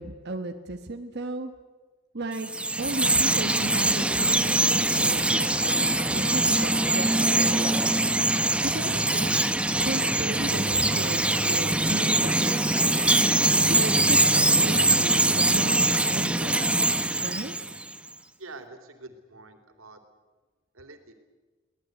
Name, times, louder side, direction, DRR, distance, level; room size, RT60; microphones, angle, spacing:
voice 1, 0.0-1.5 2.1-2.5 2.8-7.9 8.6-9.3 9.8-12.7 13.4-16.8 17.2-17.5, right 2 dB, 55° right, 5 dB, 1.2 m, -35 dB
Chirp tweet, 2.3-17.9, right 2 dB, 5° right, 0.9 m, -23 dB
voice 2, 18.4-20.0 20.8-21.1, right 2 dB, 90° right, 7 dB, 3.2 m, -45 dB
23.0 x 18.0 x 9.4 m, 1.4 s
head